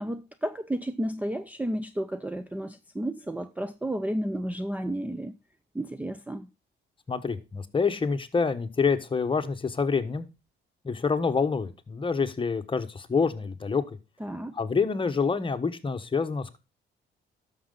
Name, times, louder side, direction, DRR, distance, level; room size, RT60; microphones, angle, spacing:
voice 1, 0.0-5.4 5.7-6.5 14.2-14.5, right 1 dB, 5° right, 0.5 m, -32 dB
voice 2, 7.1-10.3 10.8-14.0 14.5-16.6, left 5 dB, 25° left, 1.2 m, -27 dB
12.0 x 6.5 x 3.9 m
cardioid pair, 90°, 20 cm